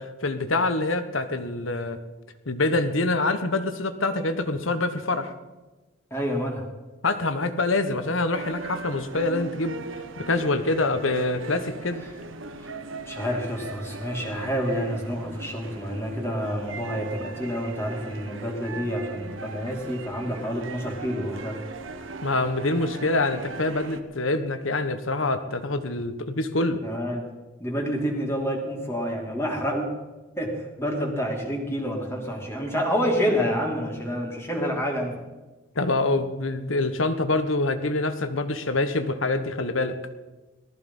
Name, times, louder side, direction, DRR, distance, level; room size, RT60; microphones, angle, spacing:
voice 1, 0.0-2.0 2.5-5.3 7.0-9.7 10.2-12.0 22.2-26.8 35.7-40.0, left 2 dB, 80° left, 10 dB, 1.3 m, -25 dB
voice 2, 6.1-6.6 12.6-12.7 13.1-21.6 26.8-27.2 27.6-29.9 30.4-35.2, equal, 10° left, -1 dB, 2.6 m, -28 dB
sound 1, 8.3-24.0, right 3 dB, 75° right, 1.2 m, -39 dB
18.5 x 14.0 x 5.5 m, 1.2 s
head